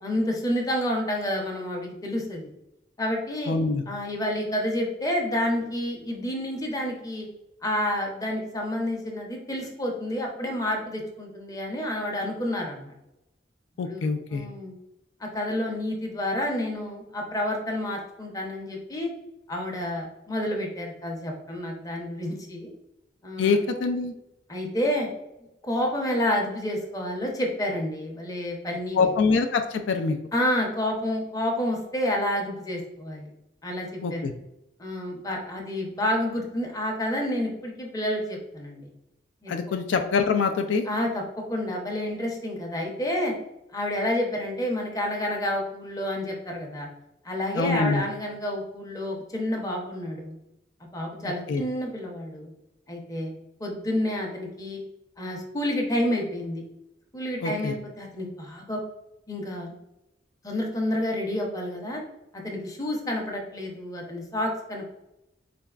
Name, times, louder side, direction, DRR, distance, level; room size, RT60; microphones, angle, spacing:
voice 1, 0.0-2.5 3.0-3.5 3.9-7.3 7.6-12.9 13.9-14.0 14.3-14.8 15.2-19.1 19.5-22.7 23.2-23.6 24.5-25.1 25.6-29.0 30.3-33.3 33.6-34.3 34.8-38.9 39.4-39.8 40.9-43.3 43.7-46.9 47.2-50.3 50.9-52.5 52.9-53.3 53.6-54.8 55.2-56.6 57.1-58.8 59.3-59.7 60.4-62.0 62.3-64.8, left 1 dB, 20° left, 1 dB, 0.7 m, -29 dB
voice 2, 3.5-3.8 13.8-14.5 23.4-24.1 28.9-30.2 34.0-34.3 39.5-40.9 47.5-48.0 51.2-51.6 57.4-57.7, left 4 dB, 85° left, 6 dB, 0.4 m, -25 dB
3.9 x 3.3 x 2.3 m, 0.91 s
head